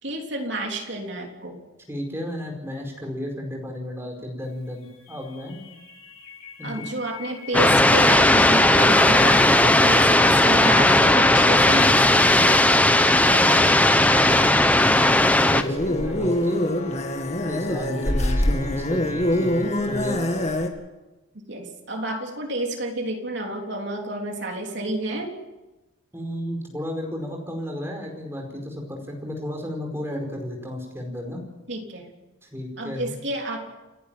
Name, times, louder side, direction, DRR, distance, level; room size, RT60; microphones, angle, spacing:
voice 1, 0.0-1.6 6.6-12.6 13.2-13.8 21.5-25.3 31.7-32.1 32.8-33.6, right 1 dB, 55° right, 2 dB, 3.5 m, -30 dB
voice 2, 1.9-5.6 6.6-6.8 13.4-13.6 14.2-16.7 17.5-20.2 26.1-31.4 32.5-33.1, left 1 dB, 10° right, 2 dB, 4.8 m, -33 dB
sound 1, 5.1-16.2, left 4 dB, 80° left, 3.5 m, -37 dB
sound 2, 7.5-15.6, left 1 dB, 5° left, 0.8 m, -16 dB
sound 3, 15.5-20.7, left 1 dB, 30° left, 2.0 m, -24 dB
29.5 x 11.0 x 9.2 m, 1.1 s
head